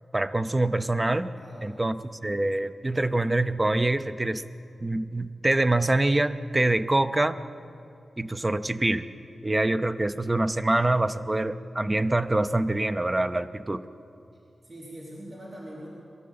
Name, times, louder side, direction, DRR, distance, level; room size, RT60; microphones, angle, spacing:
voice 1, 0.1-1.3 1.6-2.0 2.2-4.4 4.8-7.4 8.2-9.0 9.4-13.8, right 2 dB, 15° right, 10 dB, 0.5 m, -25 dB
voice 2, 1.4-2.2 14.6-15.9, equal, 40° right, -7 dB, 4.1 m, -43 dB
23.0 x 13.0 x 8.7 m, 2.6 s
wide cardioid pair, 175°, 0 cm